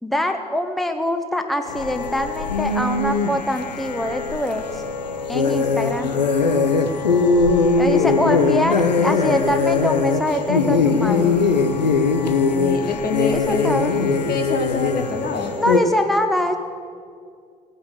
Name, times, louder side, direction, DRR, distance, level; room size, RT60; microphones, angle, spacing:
voice 1, 0.0-4.8 5.3-6.1 7.8-11.4 13.3-13.9 15.6-16.6, equal, ahead, 6 dB, 1.1 m, -24 dB
sound 1, 1.7-15.8, left 4 dB, 85° left, 0.7 m, -20 dB
voice 2, 12.5-13.7 14.3-15.5, left 4 dB, 45° left, 6 dB, 1.5 m, -25 dB
17.5 x 9.3 x 7.5 m, 2.2 s
figure-of-eight pair, 45°, 21 cm